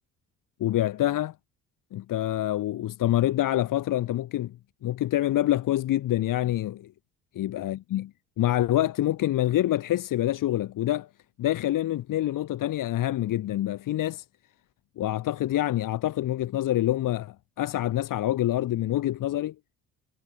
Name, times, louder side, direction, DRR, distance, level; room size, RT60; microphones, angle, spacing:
voice 1, 0.6-1.3 1.9-4.6 4.8-6.9 7.3-8.1 8.4-11.1 11.4-14.2 15.0-19.5, left 13 dB, 50° left, 1.3 m, -26 dB
figure-of-eight pair, 50°, 41 cm